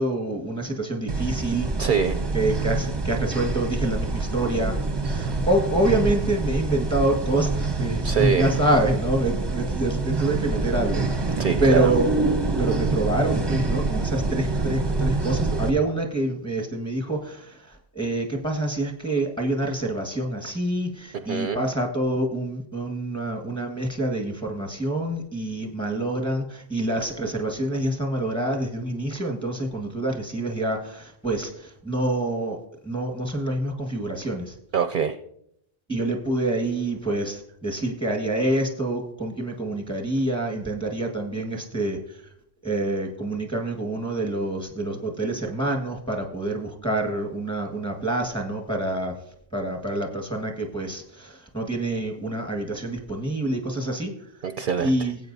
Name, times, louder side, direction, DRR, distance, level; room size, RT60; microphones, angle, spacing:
voice 1, 0.0-1.7 2.3-4.8 5.1-12.3 12.6-32.6 32.8-34.5 35.9-42.2 42.6-49.2 49.5-54.1 54.8-55.2, right 1 dB, 5° left, 1 dB, 1.5 m, -26 dB
sound 1, 1.1-15.7, right 3 dB, 25° right, 0.7 m, -26 dB
voice 2, 1.8-2.2 5.3-5.4 8.0-8.5 11.4-11.9 21.2-21.6 34.7-35.1 54.4-55.0, right 7 dB, 60° right, 8 dB, 0.6 m, -24 dB
18.0 x 8.3 x 2.7 m, 0.74 s
omnidirectional pair, 1.1 m